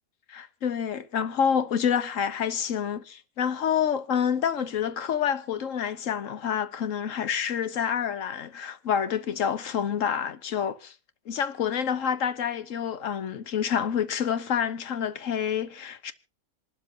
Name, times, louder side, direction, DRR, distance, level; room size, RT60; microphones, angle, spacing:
voice 1, 0.3-10.9 11.3-16.1, left 8 dB, 70° left, 1.2 m, -28 dB
26.0 x 12.0 x 2.6 m
omnidirectional pair, 1.5 m